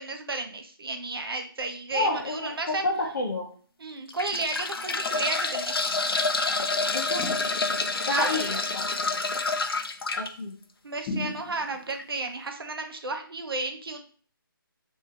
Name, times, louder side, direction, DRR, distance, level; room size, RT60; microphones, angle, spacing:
voice 1, 0.0-2.8 3.8-5.9 8.0-8.4 10.8-14.0, right 3 dB, 80° right, 6 dB, 0.6 m, -33 dB
voice 2, 1.9-3.5 6.9-7.2 8.0-8.6 10.1-10.5, left 2 dB, 50° left, -1 dB, 0.7 m, -29 dB
sound 1, 2.0-2.2 2.9-3.0 3.9-10.3 11.9-12.0 12.3-12.4, left 3 dB, 85° left, 0.5 m, -28 dB
sound 2, 7.2-8.0 11.1-12.0, left 2 dB, 10° left, 0.4 m, -36 dB
3.3 x 2.7 x 2.9 m, 0.44 s
figure-of-eight pair, 160°, 12 cm